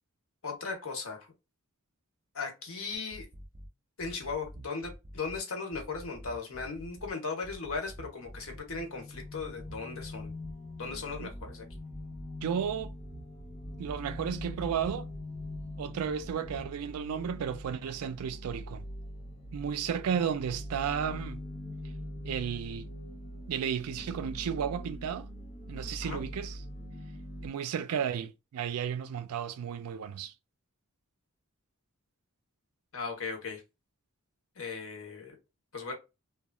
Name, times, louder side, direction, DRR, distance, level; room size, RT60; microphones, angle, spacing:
voice 1, 0.4-1.3 2.3-3.3 4.0-10.3 10.8-11.6 26.0-26.2 32.9-33.6 34.6-35.3 35.7-35.9, left 4 dB, 65° left, 0.9 m, -37 dB
sound 1, 2.9-3.7 4.0-5.4 5.7-7.1 7.4-8.8 9.1-10.5 10.9-12.2 12.6-14.0 14.3-15.7 16.0-16.7, equal, 25° right, 0.5 m, -47 dB
sound 2, 8.1-27.5, left 1 dB, 30° left, 0.6 m, -43 dB
voice 2, 12.4-13.0 13.8-15.1 15.8-18.8 19.5-21.4 22.2-22.9 23.5-25.3 25.7-26.6 27.4-30.3, right 7 dB, 85° right, 0.4 m, -33 dB
2.9 x 2.3 x 2.2 m
head